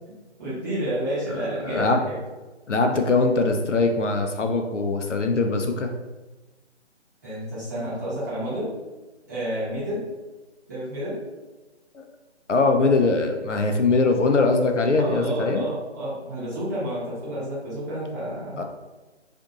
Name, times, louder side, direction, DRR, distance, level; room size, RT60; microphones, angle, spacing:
voice 1, 0.4-2.2 7.2-8.8 9.3-10.1 10.7-11.3 15.0-18.6, right 1 dB, 15° right, -11 dB, 0.8 m, -30 dB
voice 2, 1.6-2.0 2.7-5.9 11.9-12.0 12.5-15.6 18.6-18.7, left 3 dB, 80° left, 4 dB, 0.6 m, -21 dB
2.5 x 2.5 x 3.9 m, 1.2 s
figure-of-eight pair, 155°, 35 cm